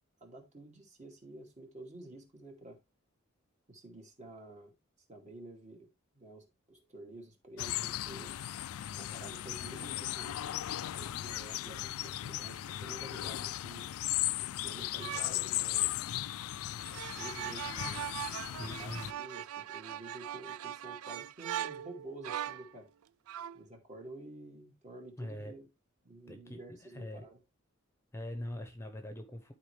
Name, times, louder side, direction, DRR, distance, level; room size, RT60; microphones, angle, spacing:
voice 1, 0.2-2.8 3.7-4.7 5.1-5.9 6.1-8.3 8.9-10.6 10.9-13.9 14.4-16.0 16.9-18.1 18.6-22.9 23.5-25.7 26.0-27.4, right 2 dB, 35° right, 2.4 m, -50 dB
sound 1, 7.6-19.1, left 14 dB, 90° left, 0.3 m, -37 dB
sound 2, 15.0-15.4 16.8-22.7 23.3-23.6, right 10 dB, 90° right, 0.4 m, -40 dB
voice 2, 18.6-19.1 25.2-25.6 26.3-27.3 28.1-29.5, left 1 dB, 15° left, 0.9 m, -42 dB
12.0 x 4.5 x 3.2 m
head